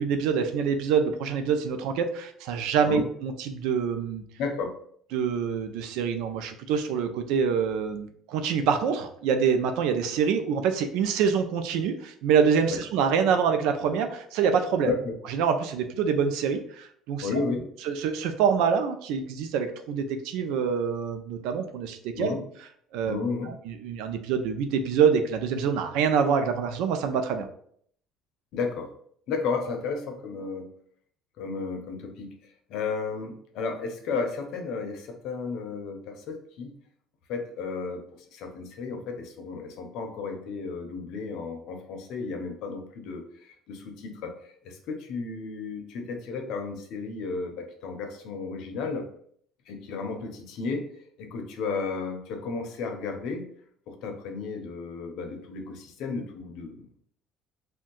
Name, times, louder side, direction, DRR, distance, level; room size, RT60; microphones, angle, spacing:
voice 1, 0.0-4.2 5.1-14.9 15.3-17.3 17.9-22.3 22.9-23.2 23.7-27.5, right 6 dB, 80° right, 7 dB, 0.4 m, -26 dB
voice 2, 4.4-4.7 12.7-12.8 14.9-15.1 17.2-17.6 22.2-22.4 23.0-23.5 28.5-28.9 29.3-30.7 31.4-32.3 32.7-36.7 37.3-38.0 38.3-44.4 44.6-49.0 49.7-50.9 51.2-53.5 53.9-57.0, left 4 dB, 70° left, 4 dB, 0.6 m, -33 dB
2.6 x 2.2 x 3.8 m, 0.63 s
cardioid pair, 135°, 0 cm